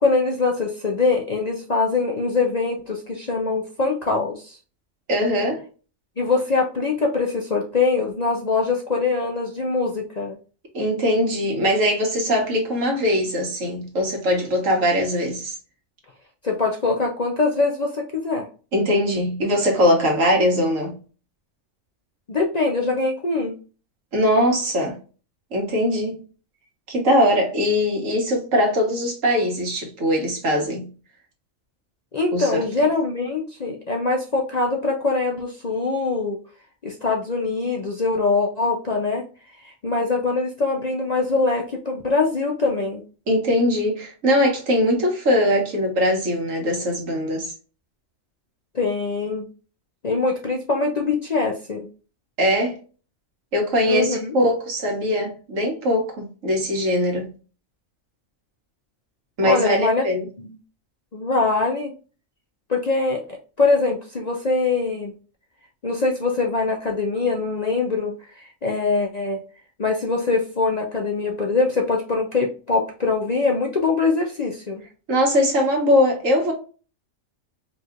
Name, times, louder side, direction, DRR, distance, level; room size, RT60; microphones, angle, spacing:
voice 1, 0.0-4.6 6.2-10.4 16.4-18.5 22.3-23.6 32.1-36.4 36.8-39.2 39.6-43.0 48.7-49.5 50.0-51.9 53.9-54.3 59.4-60.0 60.4-60.6 61.1-61.9 62.7-65.1 65.8-69.4 69.8-74.8, left 3 dB, 45° left, 0.6 m, -23 dB
voice 2, 5.1-5.6 10.7-15.6 18.7-21.0 24.1-25.0 25.5-26.2 26.9-30.9 32.3-32.6 43.3-47.5 52.4-52.8 53.5-57.3 59.4-60.3 75.1-76.5, equal, 75° right, 1.7 m, -21 dB
4.9 x 3.1 x 2.4 m
omnidirectional pair, 1.4 m